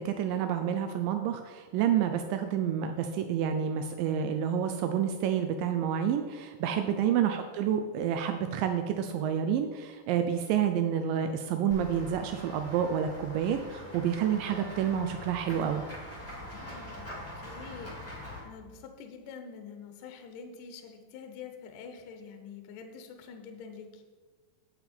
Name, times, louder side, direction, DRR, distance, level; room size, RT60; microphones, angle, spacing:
voice 1, 0.0-15.8, right 9 dB, 90° right, 7 dB, 1.9 m, -29 dB
Run / Walk footsteps / Bell, 11.7-18.4, left 1 dB, 5° left, 1.6 m, -43 dB
voice 2, 16.4-17.1 17.4-24.0, left 6 dB, 70° left, 5 dB, 2.1 m, -46 dB
9.0 x 7.9 x 4.3 m, 1.4 s
omnidirectional pair, 4.5 m